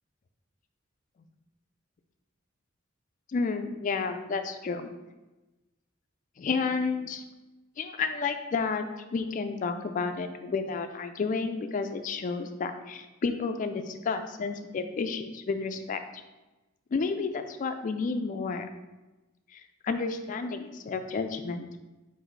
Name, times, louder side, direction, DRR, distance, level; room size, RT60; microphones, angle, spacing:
voice 1, 3.3-4.9 6.4-7.2 7.8-16.2 16.9-18.7 19.5-21.7, left 4 dB, 40° left, 7 dB, 0.3 m, -31 dB
3.9 x 2.6 x 4.5 m, 1.1 s
head